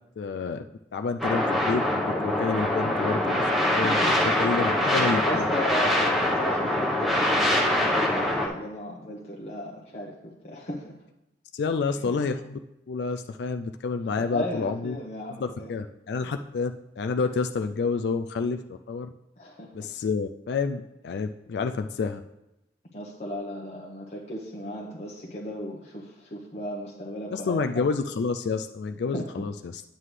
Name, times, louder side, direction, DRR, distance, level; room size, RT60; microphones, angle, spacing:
voice 1, 0.2-0.6 0.9-1.8 2.2-5.5 11.5-12.6 12.9-15.0 15.3-19.1 19.7-22.2 27.3-29.8, left 4 dB, 75° left, 6 dB, 0.3 m, -29 dB
sound 1, 1.2-8.5, left 1 dB, ahead, 1.0 m, -24 dB
voice 2, 4.8-10.9 14.2-15.7 19.4-19.9 22.9-27.7 29.1-29.2, left 1 dB, 40° left, -4 dB, 1.0 m, -36 dB
9.3 x 7.5 x 3.3 m, 0.93 s
head